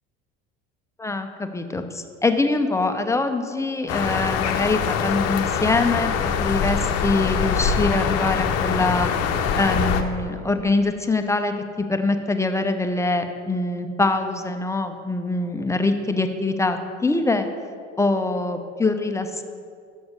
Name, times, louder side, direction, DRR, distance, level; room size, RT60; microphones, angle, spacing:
voice 1, 1.0-9.1 9.6-17.5 18.0-19.4, left 3 dB, 10° left, 6 dB, 0.7 m, -24 dB
sound 1, 3.9-10.0, left 6 dB, 55° left, 0.8 m, -23 dB
7.1 x 6.1 x 6.6 m, 2.3 s
hypercardioid pair, 80°, 31 cm